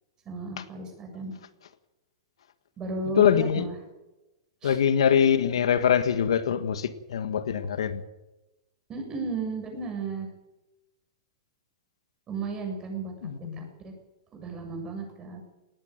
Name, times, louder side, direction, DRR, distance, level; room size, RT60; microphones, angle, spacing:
voice 1, 0.3-1.3 2.8-3.7 4.6-4.8 8.9-10.3 12.3-13.1 13.6-13.9 14.3-15.5, right 4 dB, 25° right, 7.5 m, -34 dB
voice 2, 3.2-3.6 4.6-8.0 13.2-13.7, left 8 dB, 80° left, 1.7 m, -23 dB
19.0 x 15.5 x 9.2 m
hypercardioid pair, 130°, 3 cm